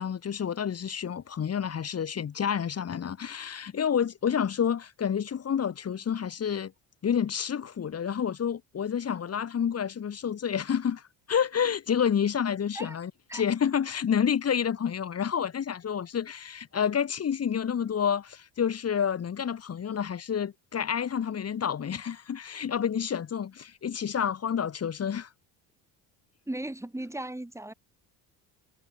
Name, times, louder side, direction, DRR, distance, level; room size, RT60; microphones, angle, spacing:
voice 1, 0.0-6.7 7.0-25.3, left 8 dB, 40° left, 3.5 m, -29 dB
voice 2, 26.5-27.7, right 1 dB, 5° right, 5.4 m, -36 dB
cardioid pair, 95°, 37 cm